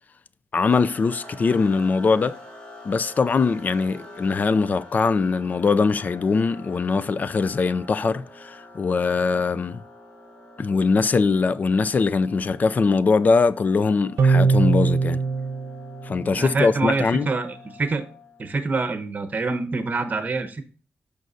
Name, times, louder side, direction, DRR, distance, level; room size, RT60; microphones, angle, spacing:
voice 1, 0.5-2.4 2.8-9.8 10.6-15.2 16.0-17.3, left 4 dB, 40° left, 0.4 m, -22 dB
sound 1, 0.7-18.5, left 2 dB, 20° left, 3.5 m, -46 dB
sound 2, 14.2-16.8, right 4 dB, 70° right, 0.8 m, -22 dB
voice 2, 16.4-18.0 18.4-20.6, right 3 dB, 35° right, 1.0 m, -26 dB
14.0 x 5.2 x 2.6 m
wide cardioid pair, 155°, 4 cm